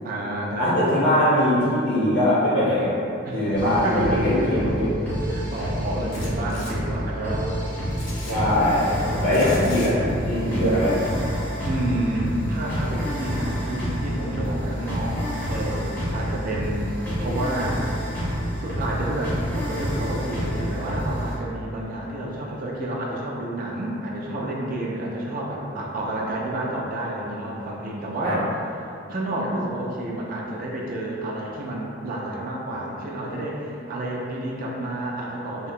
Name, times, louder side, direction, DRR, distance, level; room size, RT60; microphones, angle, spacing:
voice 1, 0.0-1.1 3.3-3.5 3.8-4.5 5.3-7.5 11.6-15.2 15.5-16.9 17.2-17.8 18.6-28.5 29.1-35.7, right 1 dB, 45° right, -3 dB, 0.3 m, -30 dB
voice 2, 0.6-2.9 3.3-4.9 8.2-10.0 10.2-11.0 28.2-28.4, left 1 dB, 60° left, -10 dB, 0.9 m, -21 dB
sound 1, 3.5-21.4, equal, 10° left, 0.7 m, -28 dB
sound 2, 6.1-6.7 7.9-8.3 9.3-9.9, left 2 dB, 80° left, 0.5 m, -39 dB
2.7 x 2.0 x 2.4 m, 2.6 s
head